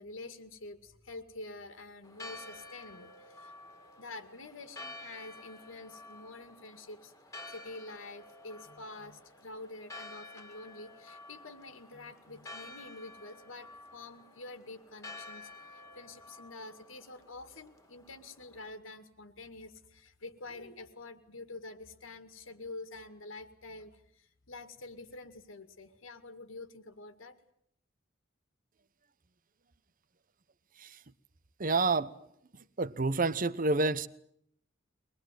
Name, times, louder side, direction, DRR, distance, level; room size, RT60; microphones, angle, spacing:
voice 1, 0.0-3.5 4.0-7.1 7.5-27.4, left 2 dB, 80° left, 2.2 m, -47 dB
Church bell, 2.0-18.7, left 2 dB, 15° left, 2.3 m, -50 dB
voice 2, 31.6-32.2 32.5-34.1, right 3 dB, 45° right, 1.0 m, -29 dB
23.5 x 20.5 x 9.3 m
head